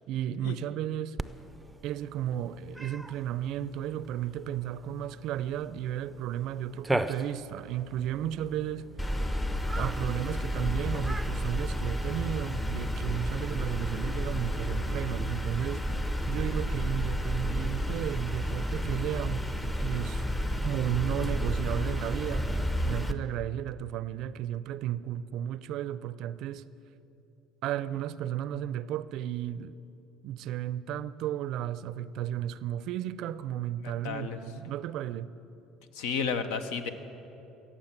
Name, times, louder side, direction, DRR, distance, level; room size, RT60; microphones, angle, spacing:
voice 1, 0.1-1.2 1.8-8.9 9.7-15.9 16.3-19.5 19.8-20.3 20.6-26.7 27.6-29.8 30.2-35.3, right 11 dB, 65° right, 0.4 m, -34 dB
Cat, 1.2-14.8, right 2 dB, 10° right, 0.5 m, -41 dB
sound 1, 9.0-23.1, equal, 15° left, 0.8 m, -31 dB
voice 2, 33.8-34.4 35.9-36.9, left 6 dB, 80° left, 0.8 m, -32 dB
18.0 x 7.2 x 7.4 m
supercardioid pair, 85°, 0 cm